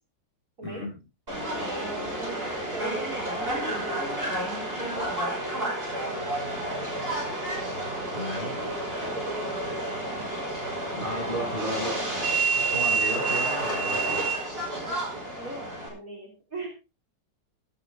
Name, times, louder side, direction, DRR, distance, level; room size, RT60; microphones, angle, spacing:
voice 1, 0.6-0.9 8.1-8.5 10.9-14.3, equal, 25° left, -2 dB, 8.4 m, -34 dB
Subway metro underground, 1.3-15.9, right 2 dB, 30° right, 6.3 m, -30 dB
voice 2, 1.5-7.2 7.5-7.8 8.4-10.4 11.1-11.6 13.1-13.4 14.9-16.7, right 1 dB, 45° right, 1 dB, 3.6 m, -41 dB
14.0 x 12.0 x 3.7 m, 0.30 s
omnidirectional pair, 2.0 m